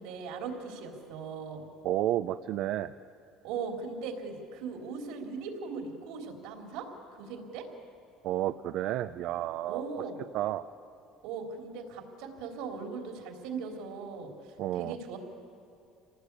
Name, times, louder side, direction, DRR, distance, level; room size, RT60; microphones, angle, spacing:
voice 1, 0.0-1.7 3.4-7.7 9.6-10.2 11.2-15.2, right 5 dB, 80° right, 2 dB, 3.6 m, -39 dB
voice 2, 1.8-2.9 8.2-9.8 10.3-10.6 14.6-15.0, right 13 dB, 60° right, 11 dB, 0.5 m, -31 dB
26.5 x 18.0 x 8.3 m, 2.5 s
cardioid pair, 155°, 0 cm